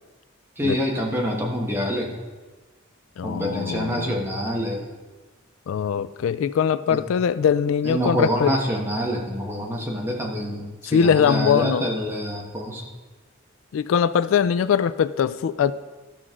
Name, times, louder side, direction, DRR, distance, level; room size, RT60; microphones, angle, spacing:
voice 1, 0.6-2.2 3.2-4.8 6.9-7.0 7.8-12.9, equal, 10° right, -2 dB, 1.3 m, -26 dB
voice 2, 3.2-4.1 5.7-8.5 10.9-11.8 13.7-15.7, left 7 dB, 80° left, 15 dB, 0.3 m, -21 dB
13.0 x 6.2 x 3.7 m, 1.3 s
head